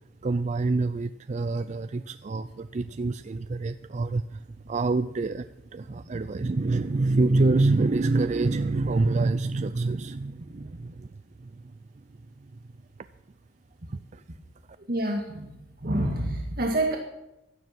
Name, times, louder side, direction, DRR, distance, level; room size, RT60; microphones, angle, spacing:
voice 1, 0.2-5.5 5.7-11.1 11.4-11.7 13.9-14.2, right 3 dB, 40° right, 12 dB, 0.4 m, -26 dB
voice 2, 14.9-17.0, right 1 dB, 55° right, 1 dB, 2.0 m, -28 dB
16.0 x 12.0 x 6.0 m, 0.90 s
head